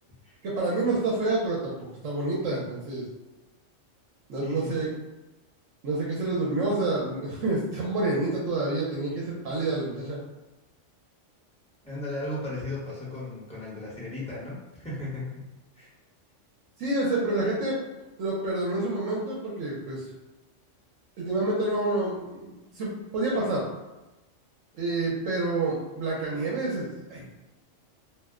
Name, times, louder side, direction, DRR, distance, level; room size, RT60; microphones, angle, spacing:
voice 1, 0.4-3.0 4.3-4.9 5.8-10.2 16.8-17.8 18.2-20.1 21.2-23.6 24.7-27.2, right 2 dB, 85° right, -4 dB, 1.1 m, -28 dB
voice 2, 4.4-4.7 11.8-15.5 15.8-15.9, left 2 dB, 5° left, -7 dB, 0.8 m, -35 dB
2.5 x 2.1 x 3.5 m, 1.0 s
omnidirectional pair, 1.3 m